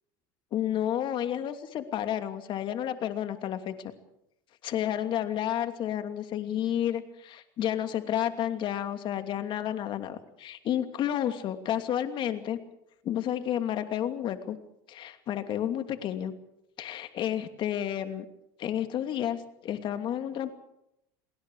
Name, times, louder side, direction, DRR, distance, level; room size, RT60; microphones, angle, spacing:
voice 1, 0.5-3.8 4.6-12.6 13.0-14.6 14.9-16.3 16.8-18.3 18.6-20.5, left 10 dB, 50° left, 7 dB, 2.8 m, -31 dB
29.5 x 20.0 x 4.9 m, 0.81 s
supercardioid pair, 115°, 11 cm